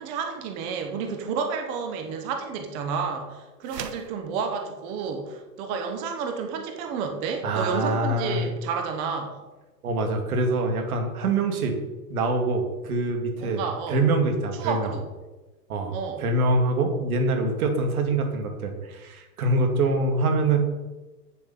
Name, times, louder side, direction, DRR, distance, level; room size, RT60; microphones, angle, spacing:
voice 1, 0.0-9.4 13.4-14.0 14.6-15.1 15.9-16.2, right 5 dB, 10° right, 4 dB, 0.4 m, -30 dB
sound 1, 3.6-4.2, right 8 dB, 80° right, 1.0 m, -37 dB
voice 2, 7.4-8.4 9.8-11.8 12.1-13.6 13.9-14.9 15.7-20.6, right 2 dB, 60° right, 4 dB, 2.3 m, -24 dB
8.2 x 7.2 x 5.7 m, 1.2 s
hypercardioid pair, 130°, 48 cm